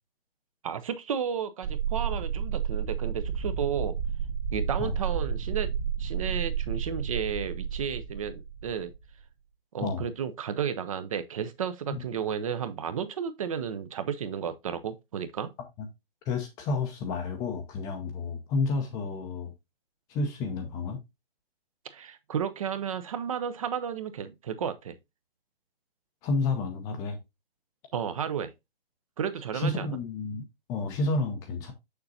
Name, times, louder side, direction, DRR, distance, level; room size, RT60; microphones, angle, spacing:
voice 1, 0.6-3.9 4.5-5.7 6.0-8.9 9.7-15.5 21.9-25.0 27.9-28.5 29.2-29.9, right 8 dB, 35° right, 0.7 m, -32 dB
sound 1, 1.6-9.2, right 7 dB, 55° right, 1.6 m, -31 dB
voice 2, 16.3-19.5 20.1-21.0 26.2-27.2 29.5-31.7, left 3 dB, 10° left, 0.6 m, -30 dB
6.7 x 6.7 x 2.7 m
figure-of-eight pair, 140°, 30 cm